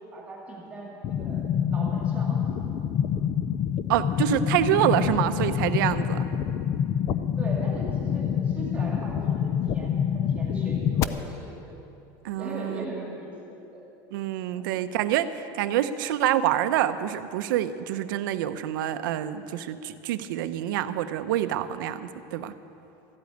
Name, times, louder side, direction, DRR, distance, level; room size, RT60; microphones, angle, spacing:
voice 1, 0.0-2.4 2.9-3.0 7.4-11.6 12.3-13.4 13.7-13.9 14.6-14.7, right 1 dB, 10° right, -2 dB, 2.0 m, -39 dB
sound 1, 1.0-11.0, left 8 dB, 30° left, 0.4 m, -26 dB
voice 2, 3.9-6.2 12.2-13.0 14.1-22.5, right 11 dB, 90° right, 11 dB, 0.7 m, -26 dB
14.0 x 8.5 x 9.3 m, 2.9 s
cardioid pair, 175°, 11 cm